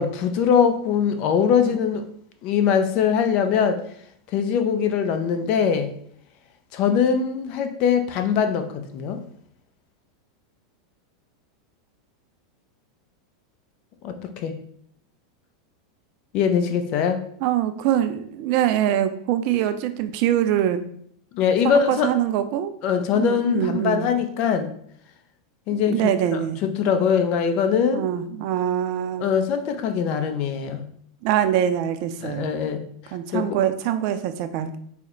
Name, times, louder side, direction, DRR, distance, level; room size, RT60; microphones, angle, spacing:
voice 1, 0.0-2.0 2.4-3.8 4.3-5.9 6.7-9.2 14.0-14.6 16.3-17.2 21.3-22.1 22.8-24.7 25.7-26.0 26.6-28.0 29.2-30.8 32.2-33.6, left 7 dB, 50° left, 7 dB, 0.5 m, -22 dB
voice 2, 17.4-20.8 21.6-22.7 23.1-24.1 25.9-26.6 27.9-29.3 31.2-32.5 33.1-34.8, right 11 dB, 55° right, 9 dB, 0.4 m, -23 dB
4.2 x 2.1 x 3.7 m, 0.65 s
hypercardioid pair, 100°, 2 cm